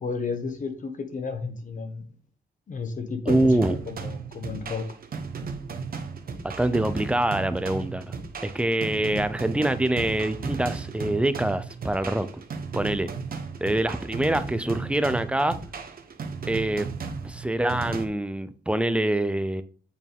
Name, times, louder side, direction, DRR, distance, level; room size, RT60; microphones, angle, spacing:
voice 1, 0.0-2.0 2.7-3.5 3.9-4.8, left 4 dB, 45° left, 1.3 m, -32 dB
voice 2, 3.3-3.7 6.4-8.0 8.4-12.4 12.7-13.1 13.6-15.6 16.4-16.9 17.2-19.6, right 1 dB, 5° right, 0.5 m, -25 dB
sound 1, 3.3-18.0, right 5 dB, 55° right, 1.0 m, -35 dB
8.4 x 4.6 x 3.5 m
wide cardioid pair, 145°, 18 cm